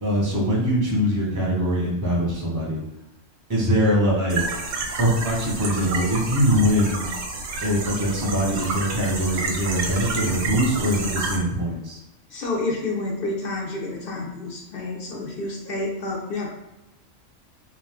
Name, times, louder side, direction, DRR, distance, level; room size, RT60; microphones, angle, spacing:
voice 1, 0.0-2.8 3.5-4.4 5.0-7.1 7.6-12.0, equal, 20° right, -3 dB, 0.6 m, -22 dB
sound 1, 4.3-11.4, right 3 dB, 85° right, 1.0 m, -30 dB
voice 2, 12.3-16.5, left 2 dB, 60° left, -1 dB, 0.6 m, -29 dB
2.4 x 2.3 x 3.4 m, 0.99 s
omnidirectional pair, 1.3 m